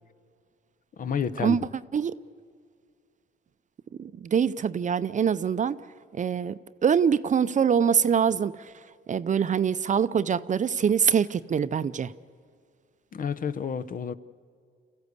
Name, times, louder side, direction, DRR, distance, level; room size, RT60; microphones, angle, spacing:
voice 1, 1.0-1.6 13.1-14.1, left 7 dB, 45° left, 0.7 m, -30 dB
voice 2, 3.9-5.8 6.1-12.1, right 7 dB, 40° right, 0.6 m, -24 dB
27.5 x 15.0 x 8.2 m
cardioid pair, 90°, 20 cm